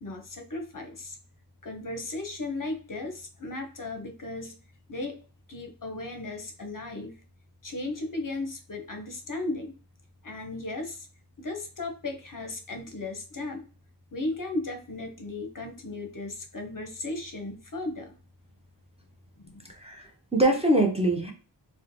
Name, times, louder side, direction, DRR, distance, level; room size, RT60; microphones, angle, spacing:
voice 1, 0.0-1.2 1.6-4.6 4.9-5.2 5.5-7.2 7.6-9.7 10.2-11.1 11.4-13.6 14.1-18.1 19.4-19.6, left 2 dB, 50° left, 5 dB, 0.6 m, -36 dB
voice 2, 19.7-21.3, right 1 dB, 15° right, 0 dB, 0.6 m, -24 dB
3.0 x 2.1 x 2.5 m, 0.37 s
wide cardioid pair, 60°, 42 cm